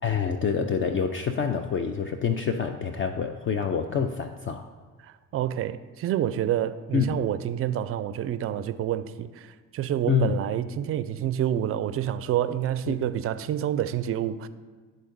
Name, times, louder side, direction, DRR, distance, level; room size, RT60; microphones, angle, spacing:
voice 1, 0.0-4.7 6.9-7.1 10.1-10.4 12.9-13.0, left 6 dB, 30° left, 0.4 m, -26 dB
voice 2, 5.0-14.5, right 11 dB, 35° right, 0.4 m, -28 dB
11.5 x 3.8 x 2.6 m
hypercardioid pair, 60°, 42 cm